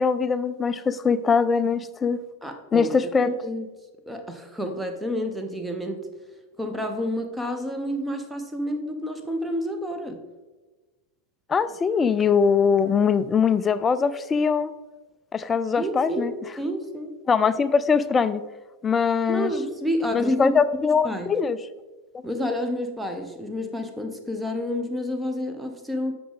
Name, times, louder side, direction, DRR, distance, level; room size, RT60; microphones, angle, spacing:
voice 1, 0.0-2.2 2.7-3.3 11.5-14.7 15.3-16.3 17.3-18.4 18.8-19.5 20.1-21.6, left 6 dB, 20° left, 15 dB, 0.3 m, -22 dB
voice 2, 2.4-3.7 4.1-6.1 6.6-10.2 15.8-17.2 19.3-20.6 21.0-21.3 22.2-26.1, equal, 5° right, 5 dB, 0.9 m, -29 dB
8.4 x 5.9 x 3.5 m, 1.2 s
figure-of-eight pair, 90°, 0 cm